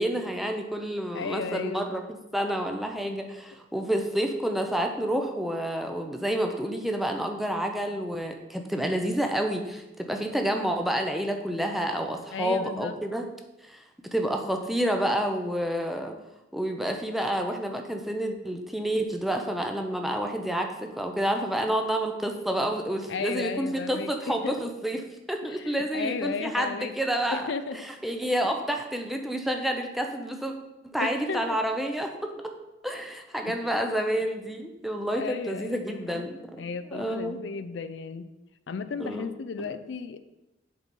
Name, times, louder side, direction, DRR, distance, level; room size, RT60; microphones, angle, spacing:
voice 1, 0.0-13.2 13.7-13.8 14.1-16.1 16.5-27.5 27.8-30.5 30.8-32.1 32.8-37.4 39.0-39.2 39.6-39.7, right 1 dB, ahead, 3 dB, 0.6 m, -29 dB
voice 2, 1.1-1.9 12.3-13.0 23.1-24.6 25.5-26.9 27.3-27.8 31.0-31.6 33.4-33.9 35.1-36.2 36.5-38.3 38.7-40.2, left 5 dB, 70° left, 12 dB, 0.4 m, -34 dB
7.4 x 4.0 x 5.3 m, 0.98 s
head